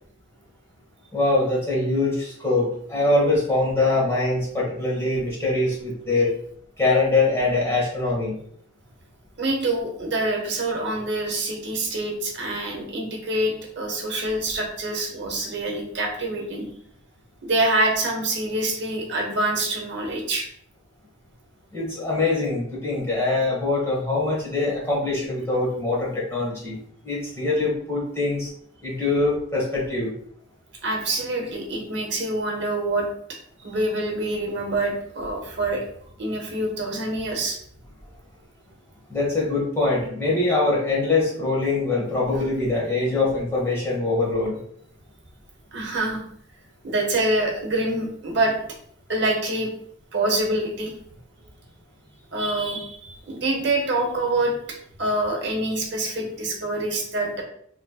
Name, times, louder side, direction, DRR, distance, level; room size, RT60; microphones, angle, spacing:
voice 1, 1.1-6.3 6.8-8.3 21.7-26.7 27.0-28.5 28.8-30.1 39.1-44.6, left 2 dB, 15° left, -5 dB, 1.2 m, -23 dB
voice 2, 9.4-16.7 17.4-20.5 30.8-33.1 33.6-35.8 36.2-37.6 45.7-46.2 46.8-48.5 49.1-49.7 50.1-50.9 52.3-54.5 55.0-57.4, right 2 dB, 65° right, 1 dB, 0.9 m, -25 dB
4.0 x 3.1 x 2.3 m, 0.65 s
head